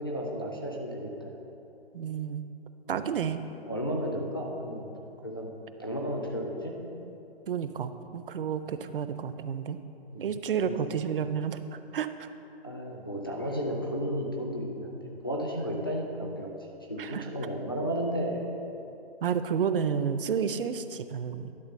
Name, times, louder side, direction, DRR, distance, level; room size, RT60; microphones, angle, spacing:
voice 1, 0.0-1.3 2.9-3.0 3.7-4.8 5.2-5.5 5.8-6.7 10.1-10.3 10.6-10.8 12.6-16.5 16.9-18.5, equal, 25° left, -1 dB, 0.4 m, -33 dB
voice 2, 1.9-2.4 2.9-3.4 7.0-7.2 7.5-9.8 10.2-12.3 17.0-17.3 19.2-21.5, right 7 dB, 60° right, 11 dB, 0.5 m, -31 dB
11.0 x 3.7 x 6.4 m, 2.8 s
hypercardioid pair, 175°, 31 cm